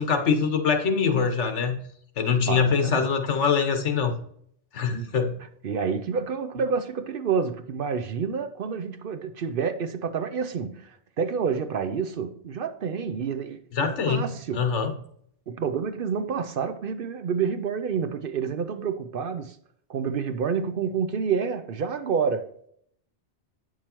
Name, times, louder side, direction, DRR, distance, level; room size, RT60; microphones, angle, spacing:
voice 1, 0.0-1.8 2.2-4.1 4.7-5.3 13.7-14.2 14.5-14.9, left 6 dB, 85° left, 1.3 m, -23 dB
voice 2, 2.4-3.1 4.9-5.1 5.6-14.6 15.5-19.6 19.9-22.5, right 6 dB, 60° right, 0.7 m, -28 dB
8.7 x 6.1 x 2.9 m
omnidirectional pair, 1.2 m